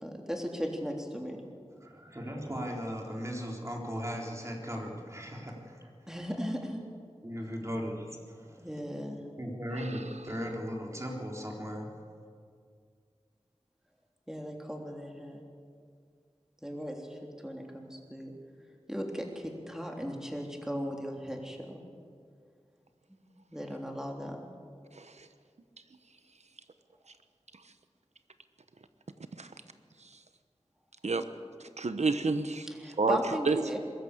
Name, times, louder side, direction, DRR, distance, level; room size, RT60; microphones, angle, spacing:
voice 1, 0.0-1.4 6.1-6.8 8.6-9.2 14.3-15.4 16.6-18.3 18.9-21.8 23.5-24.4 32.7-33.8, equal, 5° right, 1 dB, 3.4 m, -37 dB
voice 2, 1.8-5.9 7.2-8.6 9.3-12.0, equal, 25° right, -1 dB, 3.8 m, -37 dB
voice 3, 25.0-25.3 29.4-29.5 31.0-31.3 31.8-32.7 33.0-33.2 33.5-33.8, right 4 dB, 80° right, 10 dB, 1.1 m, -29 dB
22.5 x 13.5 x 8.4 m, 2.2 s
wide cardioid pair, 45°, 11 cm